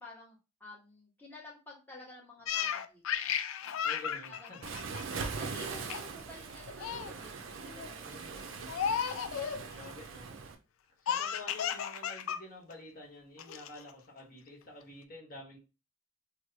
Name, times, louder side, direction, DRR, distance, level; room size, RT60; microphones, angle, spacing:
voice 1, 0.0-3.3 3.6-3.8 4.3-4.5 4.8-8.4 9.4-9.7, left 2 dB, 10° left, 0.8 m, -52 dB
Laughter, 2.5-5.5 5.9-6.2 6.5-7.1 7.6-7.9 8.7-9.6 11.1-12.4 12.7-12.8 13.4-13.9, left 8 dB, 85° left, 0.4 m, -34 dB
voice 2, 3.8-4.7 8.0-8.9 9.7-10.4 11.0-15.6, left 2 dB, 45° left, 1.2 m, -49 dB
Waves surf, 4.6-10.6, right 5 dB, 75° right, 0.5 m, -41 dB
3.1 x 2.1 x 3.9 m
head